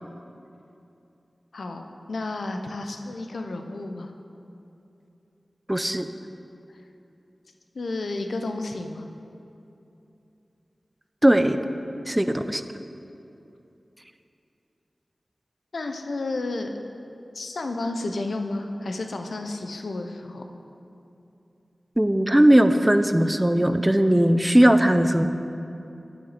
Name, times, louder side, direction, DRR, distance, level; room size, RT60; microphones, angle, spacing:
voice 1, 1.5-4.1 7.7-9.1 15.7-16.8 17.3-20.4, left 2 dB, 90° left, 5 dB, 0.5 m, -31 dB
voice 2, 5.7-6.1 11.2-11.6 12.1-12.6 22.0-25.3, right 1 dB, 15° right, 9 dB, 0.4 m, -18 dB
8.9 x 6.1 x 4.0 m, 2.8 s
wide cardioid pair, 55°, 0 cm